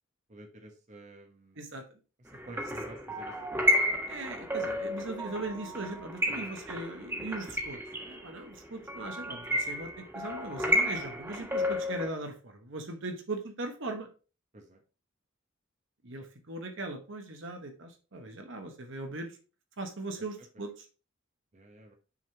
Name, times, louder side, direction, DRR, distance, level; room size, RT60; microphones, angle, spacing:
voice 1, 0.3-1.6 2.5-3.8 6.3-6.6 14.5-14.8 21.5-21.9, right 1 dB, 35° right, 3 dB, 1.0 m, -50 dB
sound 1, 2.3-12.1, equal, 10° right, 1.3 m, -32 dB
voice 2, 4.1-14.1 16.0-19.3 19.8-20.9, right 2 dB, 65° right, 5 dB, 1.1 m, -39 dB
6.1 x 3.6 x 4.4 m, 0.34 s
head